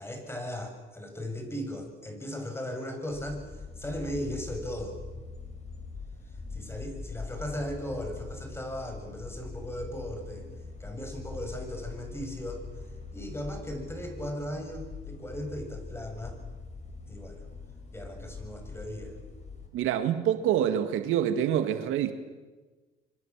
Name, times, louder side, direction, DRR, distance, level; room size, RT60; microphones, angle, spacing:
voice 1, 0.0-5.0 6.5-10.5 10.8-12.6 13.1-16.4 17.1-17.4 17.9-19.2, equal, 10° left, 5 dB, 7.2 m, -37 dB
sound 1, 3.1-19.7, left 4 dB, 35° left, 6.3 m, -43 dB
voice 2, 19.7-22.1, right 10 dB, 80° right, 9 dB, 2.1 m, -26 dB
26.0 x 25.0 x 7.5 m, 1.3 s
cardioid pair, 90°, 21 cm